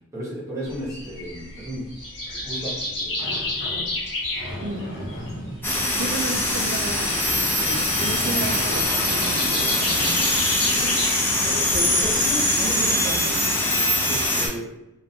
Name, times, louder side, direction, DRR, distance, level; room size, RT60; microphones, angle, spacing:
voice 1, 0.1-1.9 2.3-3.3 11.4-13.3 14.1-14.7, right 1 dB, 15° right, -6 dB, 0.8 m, -33 dB
sound 1, 0.7-12.8, left 2 dB, 60° left, 1.1 m, -32 dB
Sliding door, 3.2-10.7, equal, 80° left, 1.1 m, -36 dB
voice 2, 4.6-5.2 5.9-11.0, right 2 dB, 55° right, 4 dB, 0.4 m, -34 dB
sound 2, 5.6-14.5, left 1 dB, 10° left, 0.4 m, -22 dB
2.4 x 2.2 x 2.7 m, 0.93 s
head